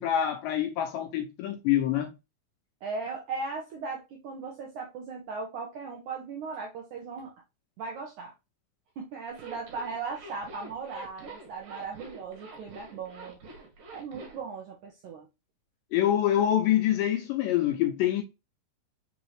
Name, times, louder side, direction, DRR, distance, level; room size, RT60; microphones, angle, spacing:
voice 1, 0.0-2.1 15.9-18.2, left 11 dB, 80° left, 2.0 m, -25 dB
voice 2, 2.8-7.3 7.8-8.3 9.0-13.4 13.9-15.3, right 4 dB, 80° right, 1.8 m, -37 dB
Zipper (clothing), 9.3-14.4, right 2 dB, 60° right, 2.9 m, -46 dB
5.9 x 2.8 x 3.1 m
omnidirectional pair, 4.4 m